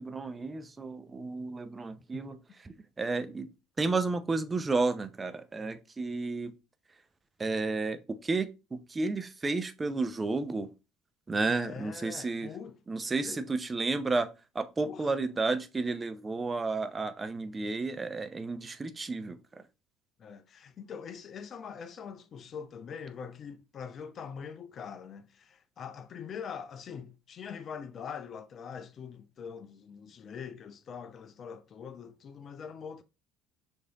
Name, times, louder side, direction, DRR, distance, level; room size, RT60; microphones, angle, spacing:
voice 1, 0.0-3.5 3.8-6.5 7.4-10.7 11.3-12.5 12.9-19.6, right 3 dB, 25° right, 0.5 m, -32 dB
voice 2, 11.5-12.7 13.2-13.4 14.8-15.1 20.2-33.0, left 7 dB, 45° left, 0.4 m, -43 dB
4.8 x 2.7 x 3.4 m
hypercardioid pair, 60°, 0 cm